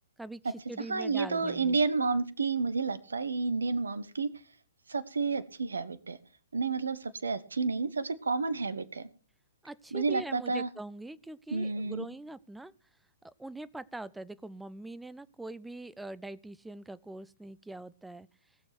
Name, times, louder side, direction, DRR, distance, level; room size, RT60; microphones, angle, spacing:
voice 1, 0.2-1.8 9.6-12.7 13.2-18.3, right 2 dB, 5° right, 17 dB, 0.6 m, -43 dB
voice 2, 0.8-4.3 4.9-6.2 6.5-9.1 9.9-10.7 11.5-12.0, right 4 dB, 70° right, 16 dB, 1.1 m, -30 dB
19.0 x 7.0 x 5.9 m, 0.39 s
figure-of-eight pair, 120°, 0 cm